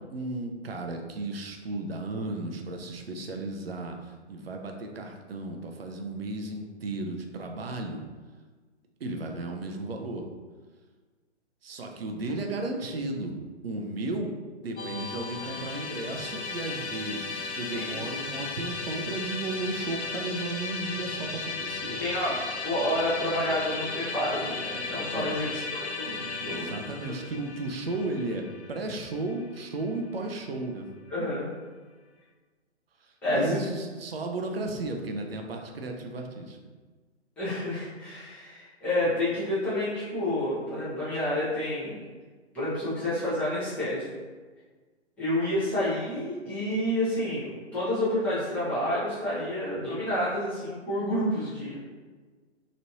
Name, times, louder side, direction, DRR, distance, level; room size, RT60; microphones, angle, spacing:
voice 1, 0.1-8.0 9.0-10.2 11.6-13.4 13.6-14.3 14.6-22.0 25.1-25.4 26.5-30.9 33.0-36.6, right 2 dB, 55° right, 3 dB, 0.5 m, -34 dB
Musical instrument, 14.8-29.9, left 4 dB, 70° left, 0.5 m, -36 dB
voice 2, 17.7-18.0 21.8-22.3 22.6-26.7 31.1-31.5 33.2-33.6 37.4-42.1 42.5-44.1 45.2-51.8, left 1 dB, 5° left, -12 dB, 0.6 m, -29 dB
3.0 x 2.5 x 2.8 m, 1.4 s
figure-of-eight pair, 130°, 35 cm